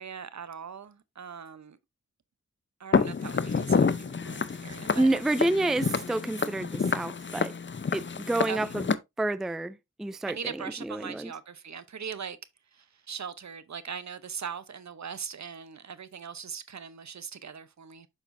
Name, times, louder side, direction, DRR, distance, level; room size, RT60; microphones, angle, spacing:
voice 1, 0.0-1.8 2.8-5.1 8.5-8.7 10.3-12.4 12.7-18.1, right 6 dB, 65° right, 0.8 m, -40 dB
Walk footsteps, 2.9-8.9, left 5 dB, 40° left, 0.6 m, -28 dB
voice 2, 4.9-7.5 7.9-8.9 9.2-11.3, right 2 dB, ahead, 0.4 m, -29 dB
7.1 x 6.1 x 2.6 m
cardioid pair, 55°, 30 cm